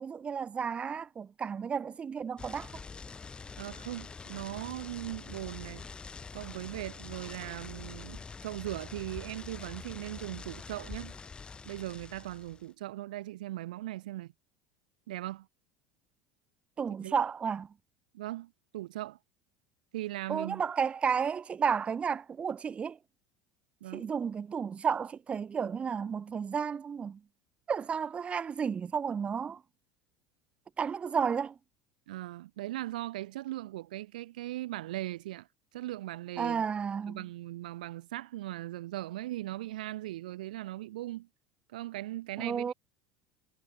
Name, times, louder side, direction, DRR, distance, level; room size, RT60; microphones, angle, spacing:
voice 1, 0.0-2.8 16.8-17.7 20.3-23.0 23.9-27.2 27.7-29.6 30.8-31.6 36.4-37.2 42.4-42.7, right 6 dB, 25° right, 0.6 m, -32 dB
sound 1, 2.4-12.7, left 5 dB, 20° left, 4.6 m, -45 dB
voice 2, 3.6-5.9 6.3-11.1 11.6-14.3 15.1-15.5 17.0-17.1 18.1-19.2 19.9-20.6 23.8-24.1 32.1-35.5 35.7-36.7 37.1-41.3 41.7-42.7, right 15 dB, 85° right, 0.9 m, -39 dB
supercardioid pair, 95°, 4 cm